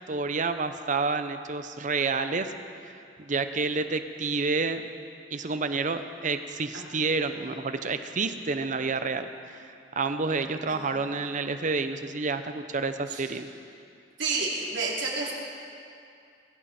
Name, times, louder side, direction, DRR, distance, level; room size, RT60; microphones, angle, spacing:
voice 1, 0.1-2.5 2.8-4.8 5.3-13.5, right 4 dB, 45° right, 9 dB, 0.8 m, -29 dB
voice 2, 14.2-15.3, right 3 dB, 85° right, -3 dB, 3.3 m, -30 dB
21.0 x 16.0 x 4.4 m, 2.4 s
head